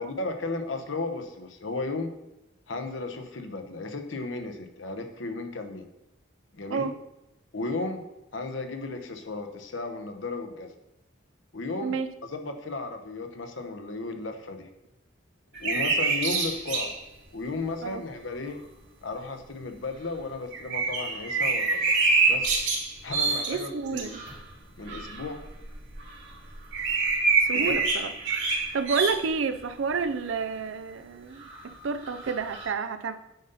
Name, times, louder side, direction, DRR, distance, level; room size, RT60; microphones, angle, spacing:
voice 1, 0.0-2.1 2.7-5.9 6.5-6.9 7.5-8.0 8.3-10.7 11.5-12.0 12.2-14.7 15.6-17.0 17.3-18.6 19.0-21.9 22.3-22.6 23.0-24.2 24.8-25.4 27.5-27.8, left 3 dB, 75° left, 6 dB, 1.0 m, -34 dB
sound 1, 15.5-17.0 17.5-17.6 20.5-24.4 24.9-29.3 29.9-30.0 31.4-32.7, right 4 dB, 65° right, 2.3 m, -26 dB
voice 2, 23.5-24.2 27.4-28.1 28.7-33.2, right 5 dB, 85° right, 11 dB, 0.5 m, -30 dB
9.3 x 5.4 x 4.0 m, 0.91 s
head